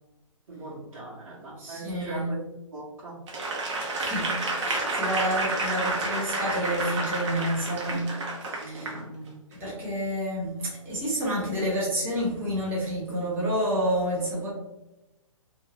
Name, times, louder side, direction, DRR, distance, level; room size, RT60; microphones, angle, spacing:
voice 1, 0.5-2.4 2.7-3.2 8.6-9.4, right 2 dB, 75° right, -7 dB, 1.2 m, -40 dB
voice 2, 1.6-2.3 4.0-4.3 4.6-8.1 8.5-8.9 9.5-14.5, equal, 10° right, -7 dB, 1.0 m, -29 dB
Applause / Crowd, 3.3-9.0 9.5-9.7, right 2 dB, 60° right, 0.8 m, -30 dB
2.6 x 2.3 x 2.9 m, 0.96 s
hypercardioid pair, 140°, 17 cm